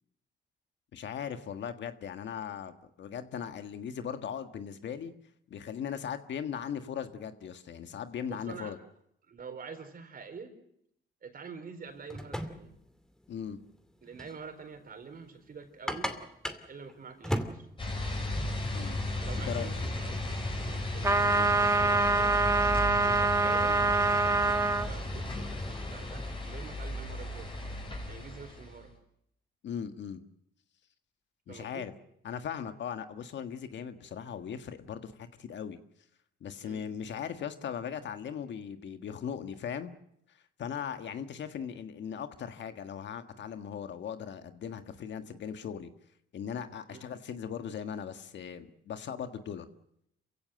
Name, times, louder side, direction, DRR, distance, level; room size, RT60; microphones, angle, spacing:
voice 1, 0.9-5.1 5.5-8.8 13.3-13.6 18.7-19.0 19.4-19.7 29.6-30.2 31.5-31.9 32.2-35.8 36.4-39.9 40.6-45.9 46.3-49.7, left 8 dB, 65° left, 8 dB, 1.6 m, -38 dB
voice 2, 8.3-8.8 9.3-10.5 11.2-12.7 14.0-16.1 16.7-17.7 19.2-22.3 23.0-27.5 28.1-28.9 31.5-31.9 36.6-36.8 46.9-47.1, right 5 dB, 45° right, 7 dB, 4.3 m, -46 dB
sound 1, 11.9-26.3, equal, 5° left, 2.3 m, -42 dB
sound 2, 17.8-28.9, left 1 dB, 25° left, 5.8 m, -35 dB
sound 3, 21.0-24.9, right 3 dB, 15° right, 1.2 m, -25 dB
27.5 x 16.0 x 7.7 m, 0.77 s
cardioid pair, 90°, 20 cm